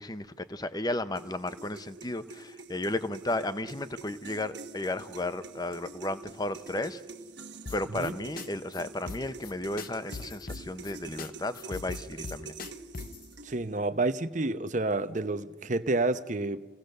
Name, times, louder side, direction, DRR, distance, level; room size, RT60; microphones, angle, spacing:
voice 1, 0.0-7.0 7.7-12.5, left 2 dB, 20° left, 0.7 m, -34 dB
sound 1, 1.2-13.8, right 4 dB, 65° right, 1.3 m, -46 dB
sound 2, 7.7-8.1 8.4-8.5 8.7-8.8 9.1-9.5 9.8-10.9 11.2-11.3 11.5-13.2, left 4 dB, 50° left, 0.9 m, -39 dB
voice 2, 13.4-16.6, right 2 dB, 40° right, 0.8 m, -29 dB
28.0 x 17.0 x 6.6 m
head